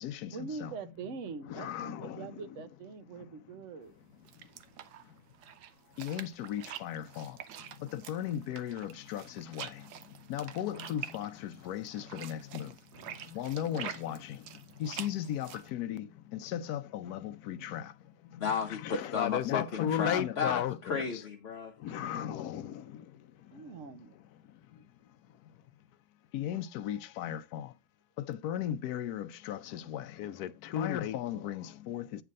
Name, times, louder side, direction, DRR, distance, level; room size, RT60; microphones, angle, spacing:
voice 1, 0.3-3.9 23.5-24.1, right 5 dB, 55° right, 1.0 m, -43 dB
voice 2, 1.5-2.2 6.0-7.3 7.9-9.7 10.3-12.7 13.4-14.2 14.8-16.0 16.5-17.8 18.8-21.0 21.8-22.6 26.3-27.7 28.3-32.0, left 10 dB, 70° left, 1.1 m, -35 dB
sound 1, 3.9-15.7, right 10 dB, 80° right, 1.3 m, -47 dB
voice 3, 18.4-21.7, left 6 dB, 50° left, 0.9 m, -33 dB
9.0 x 3.4 x 6.3 m
omnidirectional pair, 1.8 m